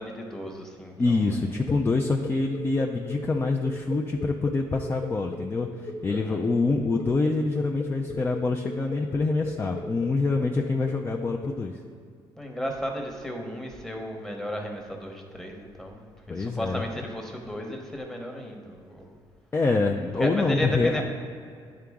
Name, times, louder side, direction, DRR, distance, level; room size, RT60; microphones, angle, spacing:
voice 1, 0.0-1.6 6.1-6.4 12.4-19.2 20.2-21.0, equal, 5° left, 1 dB, 1.0 m, -34 dB
voice 2, 1.0-11.7 16.3-16.9 19.5-21.0, left 3 dB, 25° left, 1 dB, 0.4 m, -26 dB
sound 1, 1.7-11.5, left 4 dB, 55° left, 0.8 m, -38 dB
10.5 x 3.8 x 3.5 m, 2.2 s
cardioid pair, 95°, 9 cm